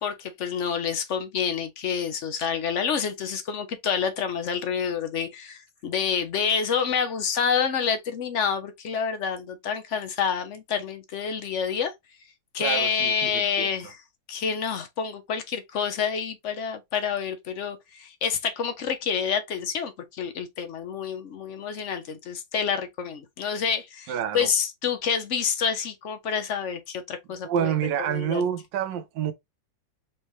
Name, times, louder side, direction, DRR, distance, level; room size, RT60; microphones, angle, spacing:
voice 1, 0.0-11.9 12.5-14.0 14.3-28.4, left 7 dB, 55° left, 0.9 m, -28 dB
voice 2, 12.6-13.7 24.1-24.5 27.4-29.3, right 9 dB, 80° right, 1.3 m, -28 dB
4.4 x 3.4 x 3.0 m
omnidirectional pair, 2.0 m